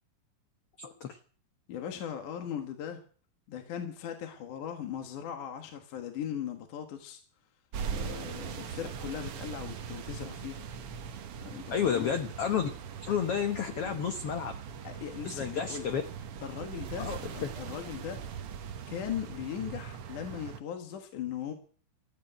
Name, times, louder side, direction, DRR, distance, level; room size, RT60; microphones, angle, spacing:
voice 1, 0.8-1.2 11.7-12.7 13.0-14.5 15.2-16.0 17.0-17.3, left 7 dB, 80° left, 7 dB, 1.3 m, -31 dB
voice 2, 1.7-3.0 3.5-7.2 7.9-10.7 11.4-12.1 14.8-15.9 16.4-18.5 18.9-21.5, left 9 dB, 65° left, 5 dB, 2.8 m, -39 dB
sound 1, 7.7-20.6, right 7 dB, 80° right, 1.3 m, -41 dB
14.5 x 8.6 x 9.0 m, 0.43 s
omnidirectional pair, 4.3 m